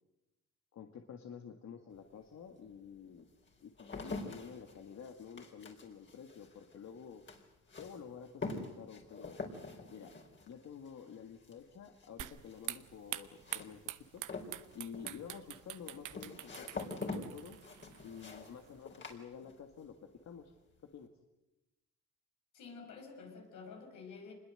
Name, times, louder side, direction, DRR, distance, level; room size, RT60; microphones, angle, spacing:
voice 1, 0.7-3.3 3.6-7.2 7.8-9.4 9.9-10.1 10.5-14.2 14.7-17.6 18.0-19.9 20.2-20.5 20.9-21.1, left 7 dB, 60° left, 5 dB, 1.9 m, -50 dB
sound 1, 2.0-2.1 2.7-19.9 20.2-20.8, left 3 dB, 40° left, 4.4 m, -46 dB
sound 2, 12.2-18.8, right 14 dB, 85° right, 1.0 m, -46 dB
voice 2, 22.5-24.3, left 5 dB, 85° left, 3 dB, 5.9 m, -49 dB
25.5 x 21.0 x 7.8 m, 0.97 s
cardioid pair, 90°, 30 cm